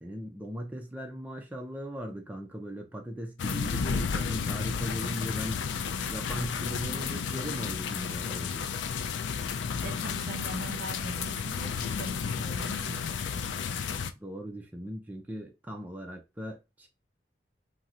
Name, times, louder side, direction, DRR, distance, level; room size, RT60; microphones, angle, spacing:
voice 1, 0.0-5.7 6.1-8.7 14.2-16.9, equal, 10° right, 0.4 m, -39 dB
sound 1, 3.4-14.1, left 6 dB, 85° left, 0.4 m, -32 dB
voice 2, 9.8-13.6, right 1 dB, 55° right, 0.9 m, -41 dB
2.8 x 2.0 x 3.6 m
head